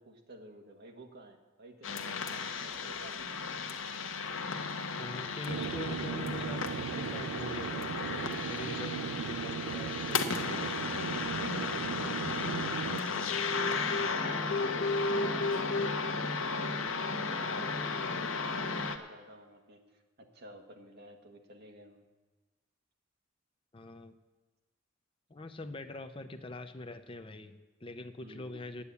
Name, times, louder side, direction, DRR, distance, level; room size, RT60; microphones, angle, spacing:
voice 1, 0.0-3.4 13.8-15.8 17.0-22.0 28.2-28.6, right 1 dB, 50° right, 4 dB, 1.4 m, -52 dB
sound 1, 1.8-19.0, left 4 dB, 75° left, 0.9 m, -34 dB
voice 2, 5.0-11.0 23.7-24.1 25.3-28.8, left 2 dB, 25° left, 8 dB, 0.6 m, -44 dB
sound 2, 5.5-13.0, right 8 dB, 85° right, 0.3 m, -38 dB
10.0 x 8.3 x 8.2 m, 1.2 s
head